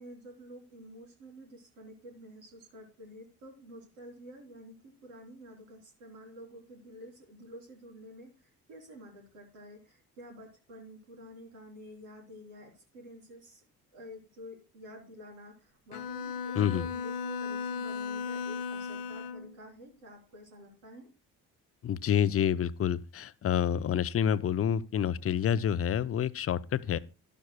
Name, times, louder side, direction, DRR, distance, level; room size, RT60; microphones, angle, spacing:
voice 1, 0.0-13.6 13.9-21.1, equal, 75° right, 3.8 m, -50 dB
Bowed string instrument, 15.9-19.5, left 5 dB, 80° left, 0.9 m, -36 dB
voice 2, 16.5-16.9 21.8-27.0, left 9 dB, 30° left, 0.6 m, -28 dB
12.0 x 12.0 x 2.3 m
figure-of-eight pair, 45°, 45 cm